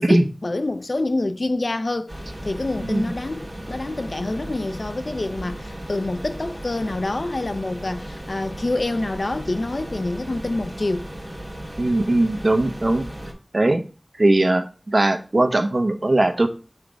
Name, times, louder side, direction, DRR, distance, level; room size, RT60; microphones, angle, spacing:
voice 1, 0.0-2.1 2.4-11.1, left 2 dB, 75° left, 0.5 m, -26 dB
sound 1, 2.1-13.3, equal, 20° right, 2.1 m, -36 dB
voice 2, 11.8-13.1 13.5-13.8 14.2-16.5, right 2 dB, 70° right, 0.8 m, -19 dB
5.7 x 3.4 x 5.0 m
wide cardioid pair, 45°, 0 cm